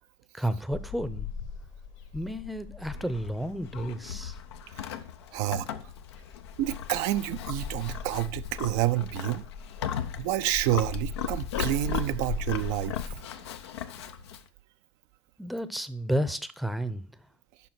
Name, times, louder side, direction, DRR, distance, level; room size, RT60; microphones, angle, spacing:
voice 1, 0.3-1.3 2.1-4.4 15.4-17.0, right 1 dB, ahead, 0.7 m, -31 dB
sound 1, 0.7-13.2, left 5 dB, 60° left, 1.4 m, -40 dB
Livestock farm animals working animals, 2.8-14.5, left 9 dB, 80° left, 0.7 m, -38 dB
voice 2, 5.3-5.7 6.6-9.4 10.2-13.0, right 15 dB, 65° right, 0.5 m, -28 dB
6.9 x 5.6 x 5.9 m
hypercardioid pair, 80°, 14 cm